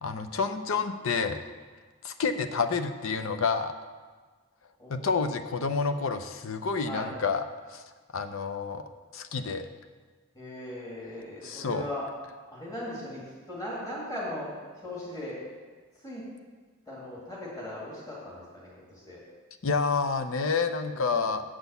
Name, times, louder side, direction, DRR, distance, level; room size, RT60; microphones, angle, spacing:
voice 1, 0.0-1.4 2.0-3.7 4.9-7.4 7.7-7.8 8.1-8.8 9.1-9.7 11.4-11.9 19.6-21.4, left 5 dB, 70° left, 8 dB, 0.6 m, -29 dB
voice 2, 4.8-5.3 6.9-7.1 10.3-12.0 12.5-14.5 14.8-15.4 16.0-16.2 16.9-19.2 20.9-21.3, left 1 dB, 15° left, -6 dB, 2.3 m, -39 dB
8.0 x 6.2 x 6.9 m, 1.4 s
head